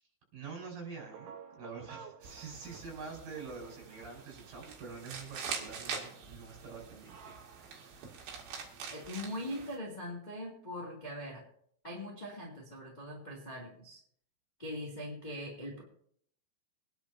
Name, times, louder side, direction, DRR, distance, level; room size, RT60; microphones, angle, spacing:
voice 1, 0.3-8.1, right 5 dB, 50° right, -1 dB, 6.7 m, -46 dB
sound 1, 1.0-5.2, right 7 dB, 90° right, 3.8 m, -53 dB
sound 2, 2.2-9.8, right 6 dB, 70° right, 4.3 m, -45 dB
voice 2, 8.9-11.4 11.8-14.0 14.6-15.8, left 1 dB, 15° left, -3 dB, 1.8 m, -41 dB
24.5 x 10.5 x 2.8 m, 0.65 s
omnidirectional pair, 5.3 m